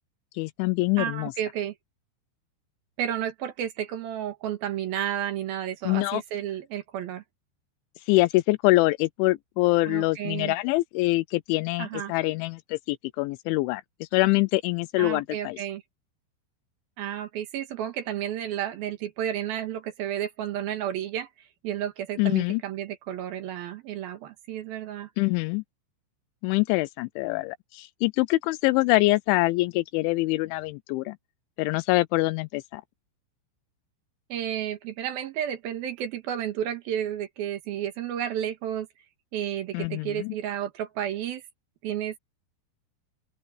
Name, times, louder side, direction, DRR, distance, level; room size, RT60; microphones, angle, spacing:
voice 1, 0.4-1.3 5.9-6.2 8.1-15.6 22.2-22.6 25.2-25.6 26.4-31.2 31.6-32.8 39.7-40.3, left 21 dB, 85° left, 3.0 m, -24 dB
voice 2, 1.0-1.7 3.0-7.2 9.8-10.6 11.8-12.1 15.0-15.8 17.0-25.1 34.3-38.9 39.3-41.4 41.8-42.2, right 10 dB, 65° right, 2.9 m, -32 dB
open air
omnidirectional pair, 5.4 m